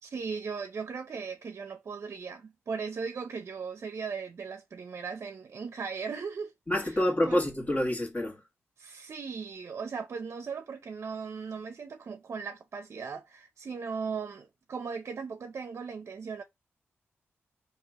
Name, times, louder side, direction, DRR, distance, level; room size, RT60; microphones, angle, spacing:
voice 1, 0.0-6.5 6.8-7.4 8.8-16.4, right 5 dB, 65° right, 0.5 m, -38 dB
voice 2, 6.7-8.4, left 1 dB, 30° left, 1.8 m, -27 dB
3.2 x 2.8 x 3.6 m
cardioid pair, 70°, 5 cm